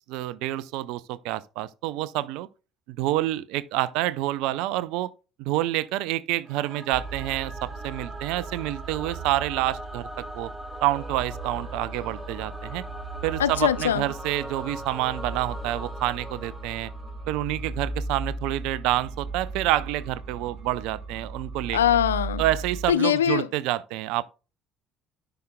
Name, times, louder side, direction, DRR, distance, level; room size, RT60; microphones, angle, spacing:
voice 1, 0.1-2.5 2.9-5.1 5.4-10.1 10.3-10.5 10.8-12.8 13.2-16.9 17.3-21.8 22.4-24.2, right 15 dB, 65° right, 0.4 m, -28 dB
Singing / Musical instrument, 6.4-17.7, equal, 10° right, 1.5 m, -41 dB
sound 1, 6.9-22.9, right 3 dB, 45° right, 3.1 m, -37 dB
voice 2, 13.4-14.0 21.7-22.4 22.9-23.5, left 10 dB, 80° left, 0.3 m, -22 dB
12.5 x 5.8 x 2.2 m
figure-of-eight pair, 55°, 0 cm